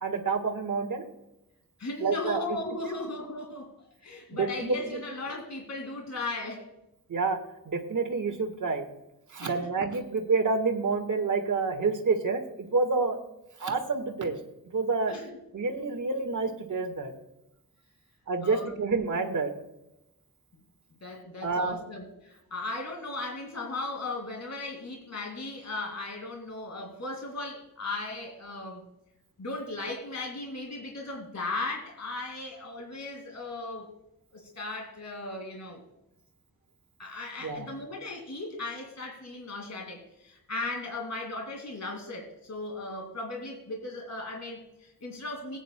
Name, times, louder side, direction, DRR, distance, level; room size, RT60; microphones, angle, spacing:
voice 1, 0.0-1.0 2.0-2.4 4.3-5.0 7.1-7.4 7.6-8.8 9.3-13.2 13.6-14.3 14.7-15.1 15.5-17.1 18.3-19.5 21.4-21.8 37.4-37.7, right 4 dB, 60° right, 5 dB, 1.6 m, -28 dB
voice 2, 1.8-3.7 4.0-6.7 9.4-9.7 15.1-15.4 18.4-18.7 21.0-28.8 29.4-33.9 34.3-35.8 37.0-45.6, left 2 dB, 50° left, 2 dB, 2.5 m, -37 dB
20.0 x 9.1 x 2.2 m, 0.89 s
wide cardioid pair, 125°, 35 cm